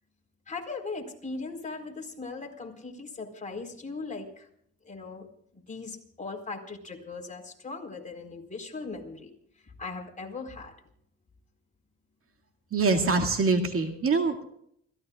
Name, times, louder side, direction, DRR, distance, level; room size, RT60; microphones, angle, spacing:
voice 1, 0.5-4.5 4.8-5.3 5.5-9.3 9.8-10.7, left 3 dB, 25° left, 1 dB, 4.3 m, -39 dB
voice 2, 12.7-14.4, right 3 dB, 45° right, 4 dB, 2.2 m, -24 dB
29.5 x 16.5 x 2.4 m, 0.69 s
cardioid pair, 90°, 30 cm